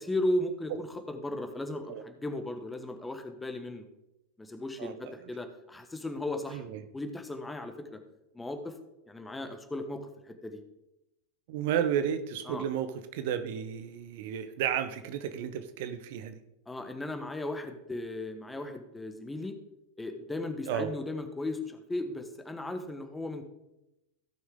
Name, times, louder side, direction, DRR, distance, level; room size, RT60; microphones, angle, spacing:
voice 1, 0.0-3.8 4.4-6.6 6.9-8.0 8.3-8.7 9.1-10.6 12.5-12.6 16.7-19.5 20.0-23.4, left 1 dB, 10° left, 7 dB, 1.2 m, -36 dB
voice 2, 4.8-5.1 6.5-6.8 11.5-16.4 20.7-20.9, right 9 dB, 50° right, 10 dB, 0.7 m, -32 dB
16.5 x 6.1 x 3.6 m, 0.92 s
figure-of-eight pair, 90°, 0 cm